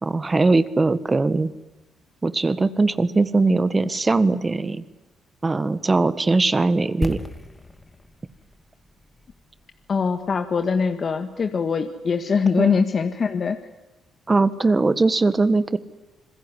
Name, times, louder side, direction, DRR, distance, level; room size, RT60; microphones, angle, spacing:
voice 1, 0.0-1.5 2.2-4.8 5.4-7.2 12.6-12.8 14.3-15.8, right 3 dB, 25° right, 14 dB, 1.5 m, -20 dB
sound 1, 7.0-10.9 11.2-11.3, left 1 dB, 15° left, 2.1 m, -36 dB
voice 2, 9.9-13.6, left 5 dB, 45° left, 7 dB, 1.7 m, -22 dB
27.5 x 21.5 x 9.9 m, 1.0 s
cardioid pair, 90°, 0 cm